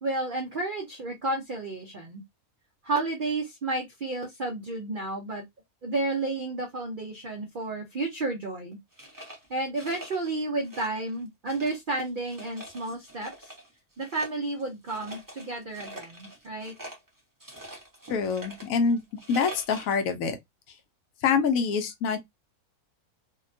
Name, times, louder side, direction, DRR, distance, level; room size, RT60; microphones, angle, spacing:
voice 1, 0.0-2.2 2.8-5.4 5.8-8.8 9.5-13.5 14.0-16.7, right 2 dB, 65° right, 0.5 m, -31 dB
sound 1, 8.9-10.4 10.6-11.2 11.5-13.7 14.0-20.1, right 1 dB, 20° right, 0.6 m, -44 dB
voice 2, 18.1-19.0 19.3-20.4 21.2-22.2, left 5 dB, 70° left, 0.9 m, -25 dB
2.7 x 2.2 x 2.5 m
omnidirectional pair, 1.6 m